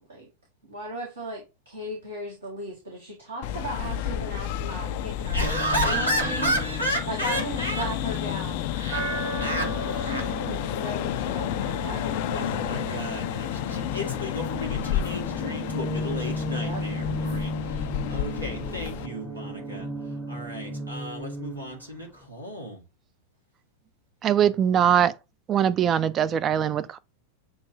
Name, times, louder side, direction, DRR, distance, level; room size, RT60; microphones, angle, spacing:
voice 1, 0.7-5.5 5.8-6.5 7.1-8.7 9.9-12.5 16.5-16.8, right 1 dB, 70° right, 1.6 m, -36 dB
sound 1, 3.4-19.1, left 11 dB, 50° left, 0.3 m, -31 dB
sound 2, 5.3-9.5 12.6-21.8, left 1 dB, 5° left, 0.7 m, -36 dB
voice 2, 5.3-7.8 8.7-9.0 9.4-9.7 10.0-10.2 11.4-22.8, right 1 dB, 90° right, 1.6 m, -32 dB
sound 3, 8.9-20.9, right 6 dB, 45° right, 2.8 m, -39 dB
voice 3, 24.2-25.1 25.5-27.0, right 9 dB, 30° right, 0.4 m, -22 dB
7.0 x 2.6 x 2.7 m
figure-of-eight pair, 90°, 0 cm